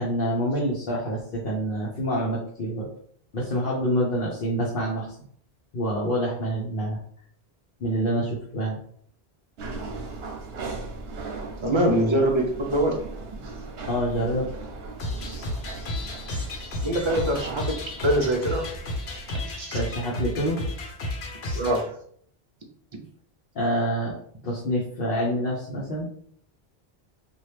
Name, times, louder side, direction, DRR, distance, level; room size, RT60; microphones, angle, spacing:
voice 1, 0.0-2.9 3.3-5.2 5.7-7.0 7.8-8.8 13.9-14.5 19.7-20.6 23.5-24.2 24.4-26.1, equal, 60° left, -4 dB, 0.9 m, -26 dB
sound 1, 9.6-19.5, right 3 dB, 75° right, 0.9 m, -38 dB
voice 2, 11.6-12.9 16.8-17.6 18.0-18.7 19.6-19.8 21.5-21.9, right 1 dB, 40° right, 2 dB, 0.5 m, -23 dB
sound 2, 15.0-21.8, left 1 dB, 90° left, 1.0 m, -32 dB
2.9 x 2.4 x 3.2 m, 0.62 s
omnidirectional pair, 1.1 m